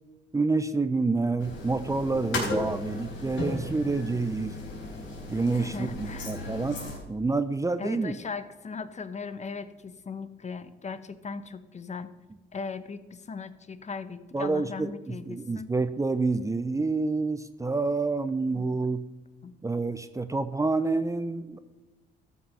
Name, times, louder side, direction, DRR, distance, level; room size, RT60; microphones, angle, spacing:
voice 1, 0.3-4.6 5.3-6.8 7.1-8.1 14.3-19.0 19.6-21.6, right 3 dB, 15° right, 12 dB, 0.6 m, -28 dB
sound 1, 1.4-7.0, left 1 dB, 75° left, 4.3 m, -35 dB
voice 2, 5.5-6.4 7.8-12.1 12.5-15.7 18.5-18.8 19.4-19.5, left 5 dB, 35° left, 13 dB, 0.9 m, -38 dB
13.0 x 6.1 x 5.6 m, 1.2 s
cardioid pair, 90°, 20 cm